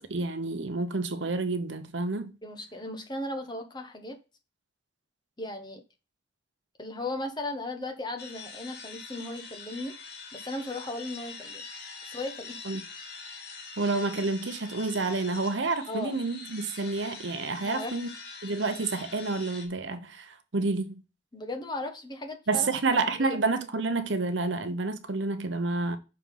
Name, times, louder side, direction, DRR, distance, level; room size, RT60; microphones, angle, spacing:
voice 1, 0.1-2.3 12.7-12.8 13.8-18.1 18.4-21.0 22.5-26.0, right 3 dB, 75° right, 0.9 m, -29 dB
voice 2, 2.4-4.2 5.4-5.8 6.8-9.9 10.3-11.6 12.1-12.7 15.9-16.2 17.6-17.9 21.3-22.7 23.2-23.4, left 2 dB, 20° left, 1.0 m, -36 dB
sound 1, 8.2-19.7, left 4 dB, 55° left, 1.8 m, -44 dB
6.2 x 4.5 x 5.4 m
head